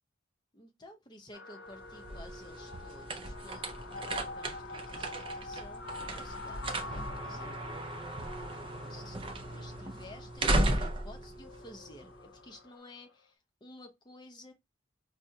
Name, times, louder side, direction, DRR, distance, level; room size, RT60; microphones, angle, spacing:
voice 1, 0.5-8.1 8.4-9.2 9.5-14.5, left 2 dB, 25° left, 0.6 m, -53 dB
sound 1, 1.3-13.0, left 3 dB, 70° left, 0.5 m, -46 dB
sound 2, 1.7-12.4, right 1 dB, 25° right, 0.4 m, -36 dB
4.6 x 2.0 x 2.7 m
head